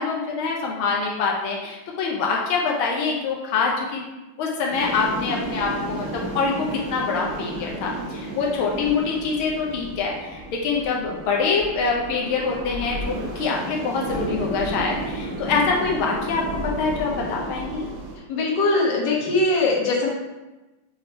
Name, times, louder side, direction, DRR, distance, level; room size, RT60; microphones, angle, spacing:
voice 1, 0.0-4.0 4.4-17.9, left 4 dB, 85° left, -1 dB, 1.1 m, -25 dB
sound 1, 4.7-18.2, right 1 dB, 80° right, 2.6 m, -32 dB
voice 2, 18.3-20.1, left 2 dB, 55° left, -2 dB, 1.3 m, -21 dB
7.4 x 3.5 x 4.5 m, 1.1 s
omnidirectional pair, 3.3 m